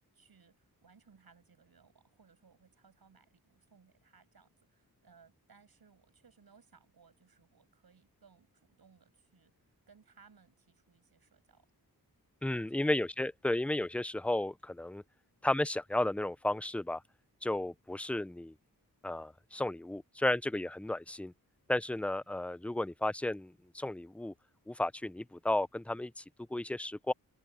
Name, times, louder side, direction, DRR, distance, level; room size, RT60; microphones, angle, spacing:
voice 1, 0.0-11.7 12.5-12.8, right 5 dB, 70° right, 7.2 m, -64 dB
voice 2, 12.4-15.0 15.4-17.0 17.4-18.5 19.0-21.3 21.7-24.3 24.7-26.2 26.5-27.1, left 1 dB, 5° left, 0.4 m, -33 dB
wide cardioid pair, 110°, 37 cm